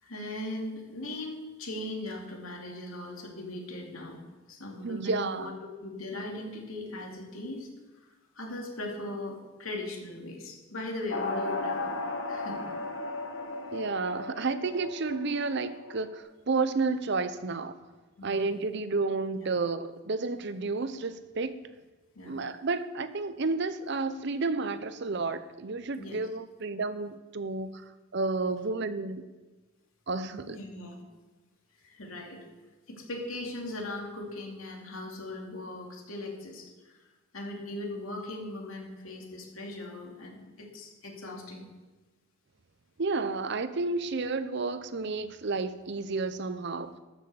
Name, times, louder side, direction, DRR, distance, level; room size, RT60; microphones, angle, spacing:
voice 1, 0.0-4.2 4.5-5.5 5.8-7.7 8.3-12.0 12.3-12.7 13.4-13.5 18.2-18.6 19.3-19.5 22.1-22.4 26.0-26.2 30.4-31.0 31.8-32.4 32.9-37.0 37.3-41.6, left 1 dB, 85° left, 2.6 m, -39 dB
voice 2, 4.8-5.6 13.7-17.8 18.2-21.6 22.3-27.8 28.1-29.3 30.1-30.6 43.0-46.9, right 3 dB, 55° right, 0.6 m, -31 dB
sound 1, 11.1-16.1, left 2 dB, 65° left, 1.3 m, -35 dB
13.0 x 6.4 x 6.9 m
head